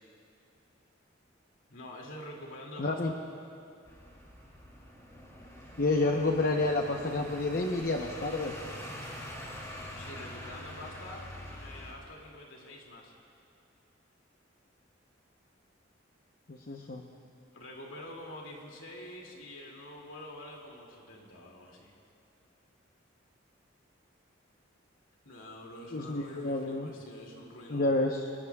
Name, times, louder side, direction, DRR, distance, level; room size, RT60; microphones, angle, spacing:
voice 1, 1.7-3.2 10.0-13.1 17.5-22.0 25.2-27.9, left 1 dB, 90° left, -1 dB, 2.5 m, -46 dB
voice 2, 2.8-3.1 5.8-8.5 16.5-17.0 25.9-26.9 27.7-28.3, left 2 dB, 50° left, 2 dB, 0.8 m, -29 dB
sound 1, 3.9-11.9, equal, 15° left, 2.8 m, -45 dB
26.0 x 20.5 x 2.3 m, 2.5 s
head